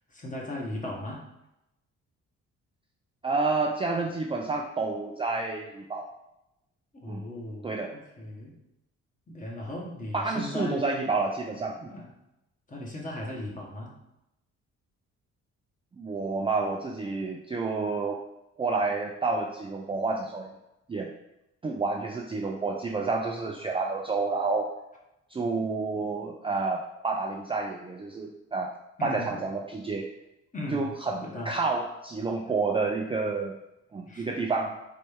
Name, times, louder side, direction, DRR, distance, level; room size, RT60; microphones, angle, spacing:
voice 1, 0.1-1.3 6.9-8.5 9.3-10.8 11.9-12.1 12.7-13.9 29.0-29.4 30.5-30.9 31.2-31.5 34.0-34.3, left 1 dB, 25° left, -2 dB, 1.4 m, -37 dB
voice 2, 3.2-6.1 7.1-7.2 7.6-7.9 10.1-11.9 16.0-18.2 18.6-20.5 20.9-21.1 21.6-24.7 25.3-28.7 29.0-30.1 30.7-33.6 33.9-34.8, right 3 dB, 20° right, 1 dB, 0.4 m, -29 dB
4.1 x 3.3 x 3.5 m, 0.88 s
cardioid pair, 90°, 30 cm